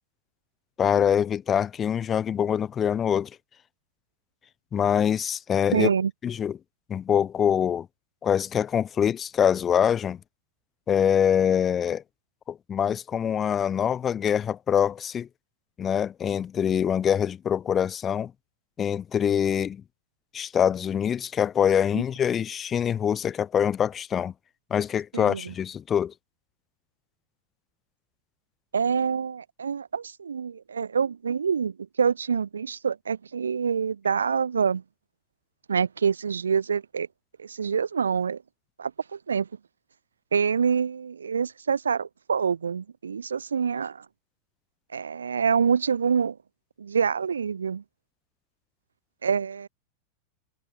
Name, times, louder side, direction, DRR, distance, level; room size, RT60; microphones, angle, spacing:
voice 1, 0.8-3.3 4.7-5.9 6.2-6.6 6.9-7.9 8.2-10.2 10.9-12.0 12.5-15.3 15.8-18.3 18.8-19.8 20.3-24.3 24.7-26.1, left 8 dB, 25° left, 1.3 m, -24 dB
voice 2, 5.7-6.1 21.9-22.0 25.1-25.5 28.7-34.8 35.7-37.1 37.4-38.4 38.8-39.5 40.3-44.0 44.9-46.4 46.8-47.8 49.2-49.7, right 6 dB, 70° right, 1.1 m, -26 dB
figure-of-eight pair, 90°, 0 cm